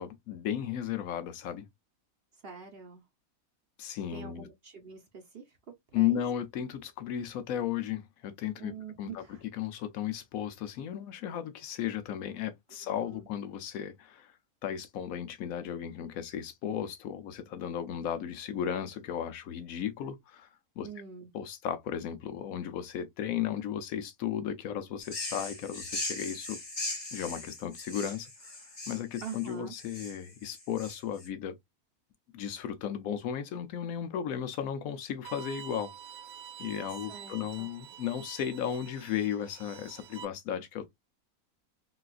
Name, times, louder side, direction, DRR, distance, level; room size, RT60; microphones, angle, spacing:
voice 1, 0.0-1.7 3.8-4.5 5.9-8.7 9.0-14.3 14.6-20.5 20.8-20.9 21.3-26.6 27.1-28.6 28.9-31.6 32.3-35.9 36.6-40.9, left 9 dB, 75° left, 1.0 m, -35 dB
voice 2, 2.4-3.0 4.1-6.2 8.6-9.4 12.8-13.3 20.8-21.3 29.2-29.7 37.1-37.7, right 6 dB, 50° right, 0.8 m, -45 dB
sound 1, 25.0-31.3, left 2 dB, 25° left, 1.0 m, -39 dB
Bowed string instrument, 35.2-40.2, right 8 dB, 85° right, 1.1 m, -47 dB
4.0 x 2.3 x 2.3 m
omnidirectional pair, 1.5 m